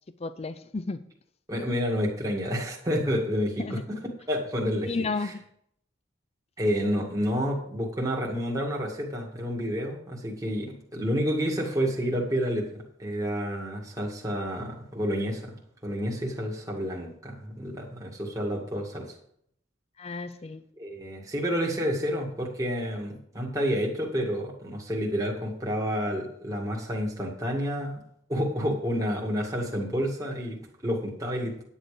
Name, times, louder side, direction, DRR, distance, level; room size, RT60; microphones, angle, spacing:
voice 1, 0.2-1.0 3.6-3.8 4.9-5.4 20.0-20.6, left 3 dB, 35° left, 12 dB, 0.5 m, -32 dB
voice 2, 1.5-4.0 4.3-4.9 5.2-5.3 6.6-12.7 13.0-19.1 20.8-28.0 28.3-31.5, equal, 20° right, -2 dB, 2.0 m, -29 dB
10.0 x 8.9 x 5.0 m, 0.69 s
head